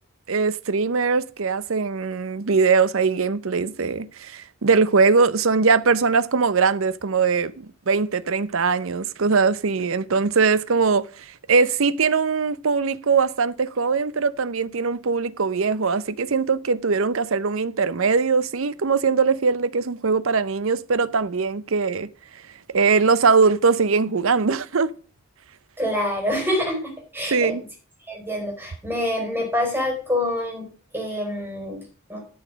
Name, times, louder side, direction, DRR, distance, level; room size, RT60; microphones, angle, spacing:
voice 1, 0.3-7.5 7.9-22.1 22.7-24.9 27.3-27.6, right 5 dB, 70° right, 0.6 m, -21 dB
voice 2, 25.8-27.5 28.1-30.7 30.9-31.8 32.1-32.2, left 1 dB, 10° right, 4.6 m, -26 dB
12.5 x 6.4 x 5.1 m
head